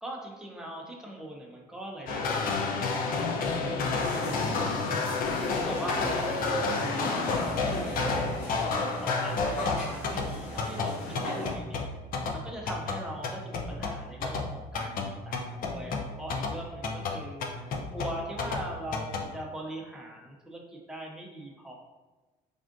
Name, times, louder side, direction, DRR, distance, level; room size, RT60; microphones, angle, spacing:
voice 1, 0.0-5.0 5.4-8.2 8.6-11.9 12.3-17.7 17.9-21.7, right 1 dB, 5° right, -2 dB, 0.6 m, -41 dB
sound 1, 2.1-19.3, left 4 dB, 55° left, 0.5 m, -31 dB
sound 2, 4.0-11.5, left 1 dB, 90° left, 1.0 m, -37 dB
3.5 x 2.4 x 2.5 m, 1.2 s
cardioid pair, 110°, 17 cm